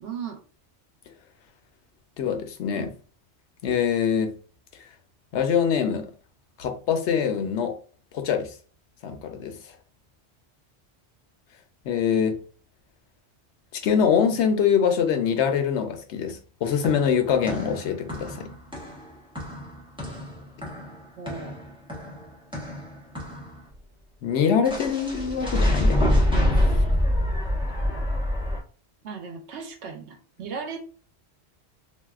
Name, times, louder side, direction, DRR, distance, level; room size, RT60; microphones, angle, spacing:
voice 1, 0.0-0.4 21.2-21.6 26.7-27.1 27.9-28.0 29.0-30.8, right 5 dB, 75° right, 1.0 m, -37 dB
voice 2, 2.2-2.9 3.6-4.3 5.3-6.1 6.6-7.8 8.1-8.5 9.0-9.6 11.8-12.4 13.7-18.5 24.2-26.0, left 7 dB, 85° left, 0.9 m, -24 dB
sound 1, 16.6-23.6 24.6-28.6, left 1 dB, 5° right, 1.0 m, -26 dB
3.4 x 2.6 x 2.4 m
omnidirectional pair, 1.1 m